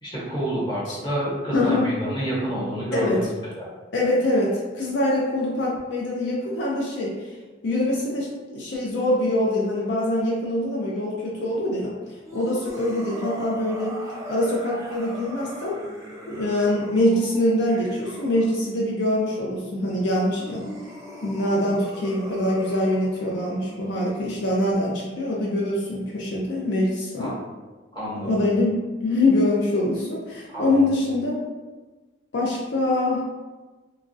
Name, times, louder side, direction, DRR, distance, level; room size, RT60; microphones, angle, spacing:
voice 1, 0.0-3.3 3.6-3.7 27.2-27.4 27.9-28.3 30.5-30.9, right 1 dB, 25° left, -8 dB, 0.9 m, -28 dB
voice 2, 2.9-3.3 3.9-7.3 7.6-12.0 12.3-14.0 14.3-15.8 16.3-20.7 21.2-27.3 28.2-31.4 32.3-33.2, left 1 dB, 70° left, -4 dB, 0.5 m, -24 dB
sound 1, 12.2-18.7 20.1-24.5, right 1 dB, 15° right, 0.3 m, -40 dB
3.0 x 2.3 x 2.5 m, 1.3 s
head